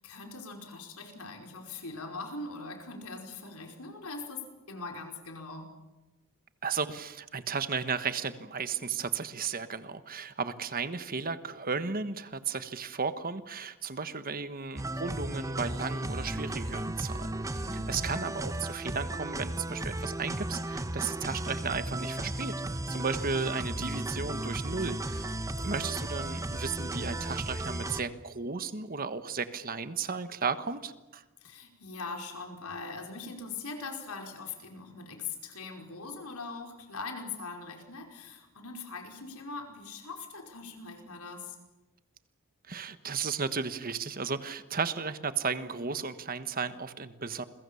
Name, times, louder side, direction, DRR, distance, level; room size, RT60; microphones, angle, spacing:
voice 1, 0.0-5.7 17.6-18.3 25.6-26.1 31.4-41.6, left 4 dB, 85° left, 3 dB, 5.1 m, -41 dB
voice 2, 6.6-22.5 22.9-25.3 25.6-31.2 42.7-47.4, right 5 dB, 40° right, 11 dB, 1.4 m, -34 dB
sound 1, 14.7-28.0, right 1 dB, 15° right, 1.0 m, -35 dB
29.5 x 22.5 x 7.1 m, 1.1 s
head